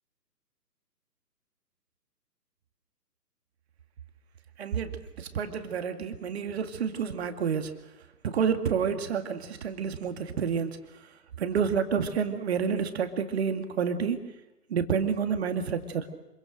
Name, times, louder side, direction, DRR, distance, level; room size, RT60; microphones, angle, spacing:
voice 1, 4.6-7.7 8.2-10.8 11.4-14.2 14.7-16.1, right 7 dB, 40° right, 7 dB, 2.2 m, -29 dB
26.0 x 24.0 x 6.5 m, 1.0 s
figure-of-eight pair, 145°, 50 cm